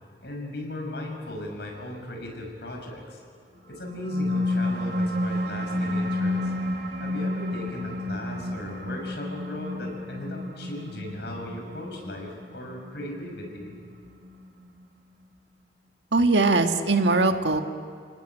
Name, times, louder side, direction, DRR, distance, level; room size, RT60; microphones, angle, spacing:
voice 1, 0.2-3.2 3.7-6.5 7.0-13.7, left 1 dB, 70° left, 2 dB, 6.0 m, -37 dB
sound 1, 3.7-14.7, left 1 dB, 70° right, 2.8 m, -30 dB
voice 2, 16.1-17.6, right 3 dB, 90° right, 6 dB, 1.7 m, -21 dB
30.0 x 19.0 x 9.1 m, 2.2 s
head